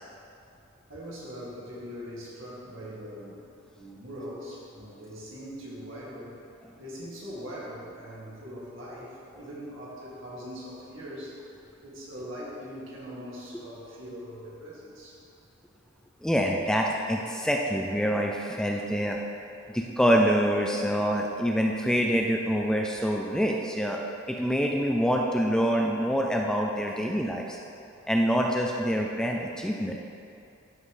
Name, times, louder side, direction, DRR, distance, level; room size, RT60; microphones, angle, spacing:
voice 1, 0.9-3.4 3.7-6.4 6.8-11.4 11.8-15.2 19.6-20.0, equal, 65° right, -6 dB, 2.1 m, -41 dB
voice 2, 16.2-19.2 19.7-27.6 28.1-30.0, equal, 5° left, 0 dB, 0.3 m, -26 dB
13.0 x 5.5 x 3.2 m, 2.6 s
head